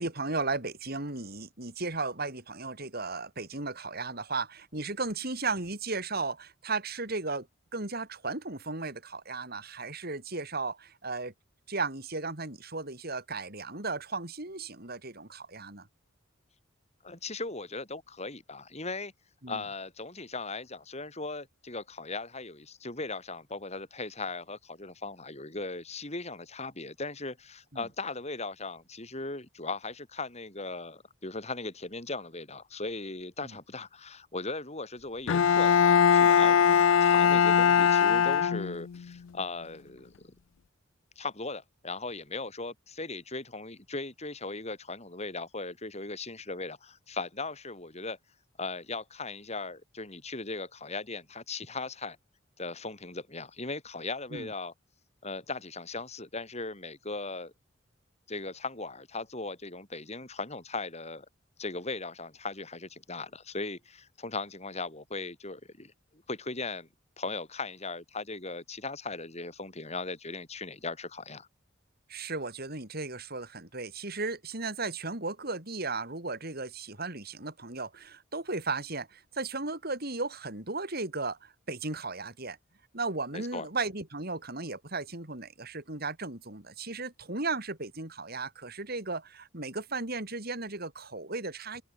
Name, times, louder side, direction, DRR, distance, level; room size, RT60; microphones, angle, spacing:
voice 1, 0.0-7.5 7.7-11.3 11.7-15.9 19.4-19.6 27.7-27.9 33.4-33.5 54.3-54.5 72.1-82.6 82.9-91.8, right 3 dB, 50° right, 4.7 m, -35 dB
voice 2, 17.0-19.1 19.5-36.6 37.0-40.3 41.2-48.2 48.6-52.2 52.6-54.7 55.2-57.5 58.3-61.3 61.6-66.9 67.2-71.5 83.3-83.7, left 3 dB, 35° left, 6.2 m, -38 dB
Bowed string instrument, 35.3-39.0, left 7 dB, 80° left, 0.4 m, -21 dB
head